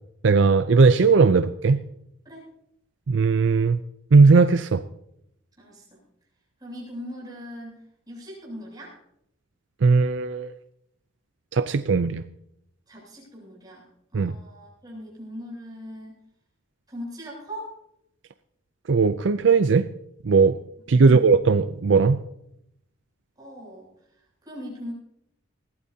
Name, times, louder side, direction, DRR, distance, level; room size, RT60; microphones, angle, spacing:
voice 1, 0.2-1.8 3.1-3.8 4.1-4.8 9.8-10.5 11.5-12.2 14.1-14.3 18.9-19.9 20.2-20.6 20.9-22.2, right 4 dB, 65° right, 11 dB, 0.5 m, -18 dB
voice 2, 5.6-6.0 6.6-7.8 8.1-8.9 12.9-13.8 14.1-16.2 16.9-17.7 21.0-21.3 23.4-23.9 24.4-24.9, equal, 20° right, -3 dB, 7.7 m, -39 dB
20.5 x 15.5 x 2.8 m, 0.76 s
head